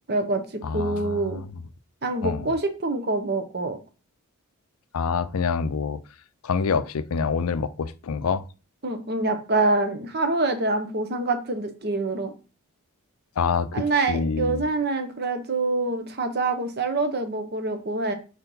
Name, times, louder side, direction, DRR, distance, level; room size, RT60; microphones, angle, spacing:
voice 1, 0.1-1.4 2.0-3.8 8.8-12.3 13.7-18.1, right 3 dB, 45° right, 1.0 m, -26 dB
voice 2, 0.6-1.5 2.2-2.5 4.9-6.0 6.4-8.4 13.4-14.6, left 5 dB, 80° left, 0.5 m, -26 dB
4.4 x 4.4 x 5.4 m
head